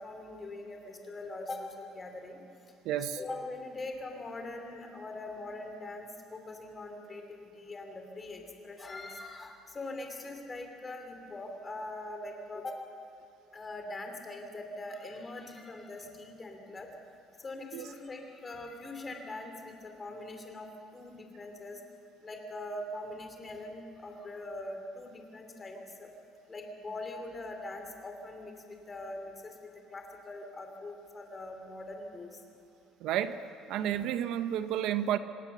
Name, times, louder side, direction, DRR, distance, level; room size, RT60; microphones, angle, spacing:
voice 1, 0.0-2.4 3.1-12.8 13.5-16.9 17.4-21.8 22.2-26.1 26.5-32.4, left 2 dB, 20° left, 4 dB, 2.7 m, -42 dB
voice 2, 2.8-3.2 17.7-17.9 33.0-33.4 33.7-35.2, right 11 dB, 65° right, 11 dB, 0.8 m, -31 dB
25.5 x 18.5 x 6.8 m, 2.6 s
cardioid pair, 165°, 0 cm